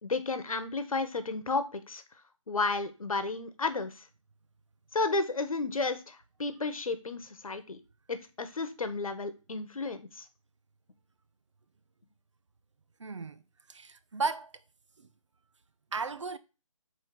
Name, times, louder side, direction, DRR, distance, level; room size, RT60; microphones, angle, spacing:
voice 1, 0.0-2.0 2.5-4.0 4.9-7.8 8.1-10.3, left 3 dB, 80° left, 1.3 m, -32 dB
voice 2, 13.0-13.4 13.7-14.5 15.9-16.4, right 4 dB, 60° right, 0.7 m, -34 dB
5.2 x 4.5 x 6.0 m
hypercardioid pair, 180°, 18 cm